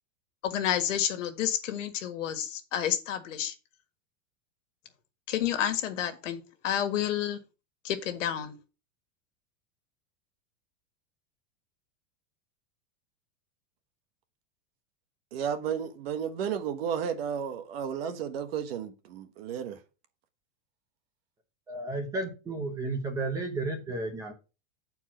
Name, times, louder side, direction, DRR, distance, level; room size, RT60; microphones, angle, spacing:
voice 1, 0.4-3.5 5.3-7.4 7.8-8.5, left 10 dB, 80° left, 1.7 m, -30 dB
voice 2, 15.3-19.8, right 8 dB, 50° right, 1.3 m, -33 dB
voice 3, 21.7-24.3, right 2 dB, 10° right, 0.8 m, -33 dB
8.6 x 4.6 x 5.9 m
supercardioid pair, 180°, 38 cm